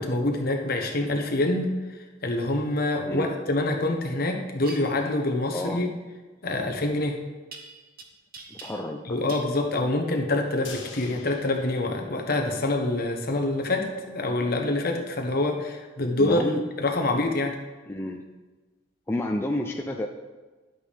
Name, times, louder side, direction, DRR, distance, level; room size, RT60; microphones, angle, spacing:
voice 1, 0.0-1.7 2.2-5.9 6.4-7.2 9.1-16.4 16.8-17.6, left 2 dB, 50° left, 3 dB, 1.1 m, -26 dB
sound 1, 4.6-4.8 7.5-8.0 8.3-9.0 9.3-9.5, right 4 dB, 50° right, 0.9 m, -43 dB
voice 2, 5.5-5.9 8.5-9.2 16.2-16.6 17.9-18.3 19.1-20.1, left 1 dB, 10° left, 1 dB, 0.4 m, -30 dB
sound 2, 10.6-12.8 13.1-13.2 13.6-13.7, left 4 dB, 65° left, 1.4 m, -45 dB
11.0 x 7.8 x 3.5 m, 1.3 s
head